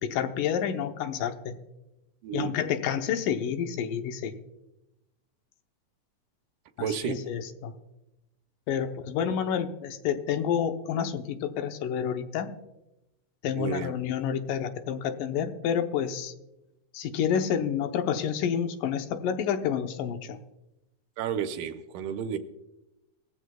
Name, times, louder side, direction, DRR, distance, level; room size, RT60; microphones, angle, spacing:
voice 1, 0.0-1.5 2.3-4.3 6.8-7.7 8.7-12.5 13.4-16.3 16.9-20.4, left 8 dB, 85° left, 7 dB, 2.5 m, -29 dB
voice 2, 6.8-7.2 13.6-13.9 21.2-22.4, right 8 dB, 85° right, 8 dB, 2.4 m, -31 dB
19.5 x 14.5 x 2.3 m, 0.94 s
omnidirectional pair, 3.8 m